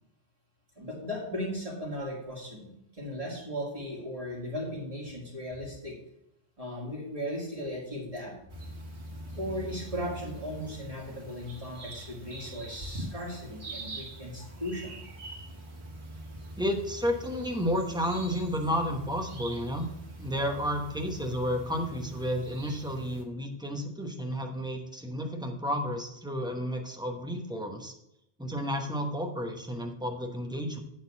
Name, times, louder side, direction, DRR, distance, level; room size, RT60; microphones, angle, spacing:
voice 1, 0.8-6.0 6.6-8.3 9.3-15.0, equal, 30° right, -3 dB, 2.2 m, -37 dB
sound 1, 8.5-23.2, right 1 dB, 75° right, 1.7 m, -43 dB
voice 2, 16.6-19.9 20.2-27.9 28.4-30.8, equal, 5° right, 3 dB, 1.0 m, -31 dB
9.3 x 4.0 x 7.1 m, 0.83 s
omnidirectional pair, 1.1 m